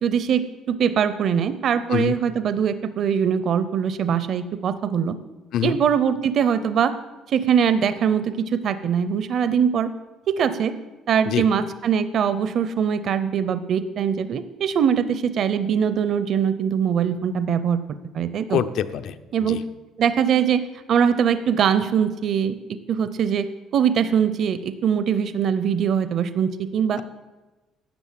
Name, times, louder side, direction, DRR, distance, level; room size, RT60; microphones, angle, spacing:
voice 1, 0.0-5.2 5.6-6.9 7.3-9.9 10.3-10.7 11.1-17.8 18.1-18.6 19.3-19.6 20.0-20.6 20.9-22.6 22.9-23.5 23.7-27.0, right 7 dB, 50° right, 13 dB, 0.6 m, -22 dB
voice 2, 18.5-19.6 27.0-27.1, left 10 dB, 65° left, 12 dB, 0.6 m, -25 dB
12.5 x 7.9 x 7.4 m, 1.2 s
cardioid pair, 145°, 0 cm